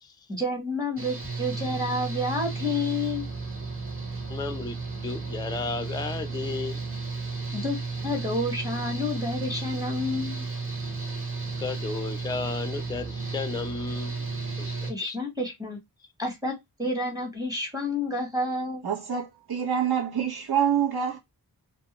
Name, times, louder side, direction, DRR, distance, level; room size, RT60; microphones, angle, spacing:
voice 1, 0.3-3.3 7.5-7.8 8.0-10.5 14.9-15.8 16.2-18.8, left 2 dB, 10° right, 1.0 m, -29 dB
Engine / Mechanical fan, 1.0-14.9, right 4 dB, 30° right, 1.1 m, -33 dB
voice 2, 4.3-4.8 5.0-6.8 11.6-14.2 14.6-15.2, left 4 dB, 10° left, 0.3 m, -33 dB
voice 3, 18.8-21.2, right 8 dB, 65° right, 0.8 m, -26 dB
2.2 x 2.1 x 2.8 m
wide cardioid pair, 70°, 41 cm